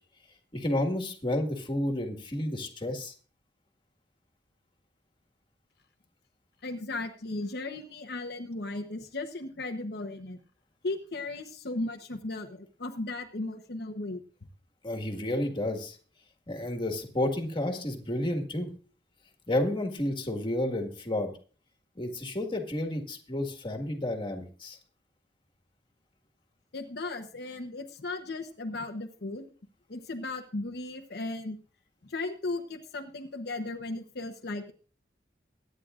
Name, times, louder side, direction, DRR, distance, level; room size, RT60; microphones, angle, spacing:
voice 1, 0.5-3.1 14.8-16.0 16.5-18.7 19.5-21.3 22.0-24.8, left 1 dB, 30° left, 4 dB, 1.8 m, -31 dB
voice 2, 6.6-10.4 10.8-14.2 26.7-29.5 29.9-31.6 32.0-34.7, left 2 dB, 65° left, 3 dB, 1.0 m, -36 dB
23.0 x 9.5 x 2.5 m, 0.39 s
head